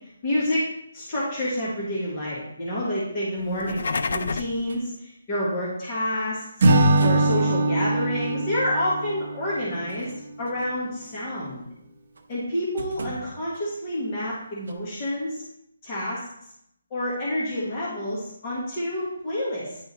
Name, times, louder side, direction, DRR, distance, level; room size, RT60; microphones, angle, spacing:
voice 1, 0.2-0.7 0.9-6.4 7.0-10.1 10.4-11.6 12.3-15.4 15.8-16.3 16.9-19.8, left 1 dB, 20° left, -7 dB, 1.4 m, -28 dB
sound 1, 3.5-4.6, left 4 dB, 55° left, 0.4 m, -28 dB
sound 2, 4.7-4.8 6.8-7.5 8.3-8.4 9.7-10.7 12.1-12.4 12.8-13.6 14.7-14.8, right 2 dB, 60° right, 0.8 m, -36 dB
Acoustic guitar / Strum, 6.6-9.9, right 1 dB, 35° right, 0.9 m, -22 dB
9.8 x 3.5 x 4.0 m, 0.75 s
hypercardioid pair, 175°, 0 cm